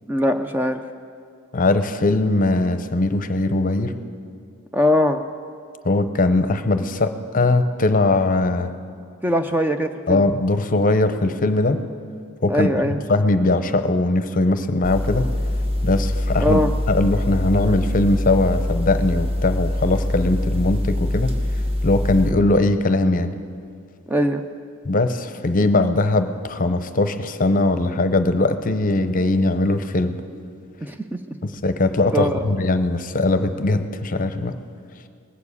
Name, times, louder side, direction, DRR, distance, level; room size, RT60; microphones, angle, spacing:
voice 1, 0.1-0.8 4.7-5.2 9.2-10.2 12.5-13.0 16.4-16.7 24.1-24.4 30.8-31.2 32.1-32.4, equal, 10° right, 6 dB, 0.4 m, -21 dB
voice 2, 1.5-3.9 5.8-8.7 10.1-11.8 12.4-15.3 15.8-21.3 21.8-23.3 24.9-30.2 31.4-34.6, left 2 dB, 40° left, 10 dB, 0.7 m, -20 dB
sound 1, 14.8-22.3, left 1 dB, 25° right, 0.9 m, -24 dB
19.5 x 7.2 x 8.4 m, 2.3 s
head